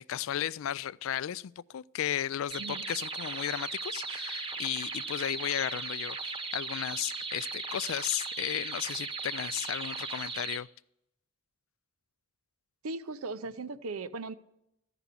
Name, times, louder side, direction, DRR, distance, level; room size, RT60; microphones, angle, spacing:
voice 1, 0.0-10.7, left 11 dB, 65° left, 0.3 m, -34 dB
sound 1, 2.5-10.6, right 4 dB, 25° right, 0.9 m, -37 dB
voice 2, 12.8-14.3, right 3 dB, 80° right, 0.7 m, -38 dB
14.0 x 6.0 x 6.7 m
head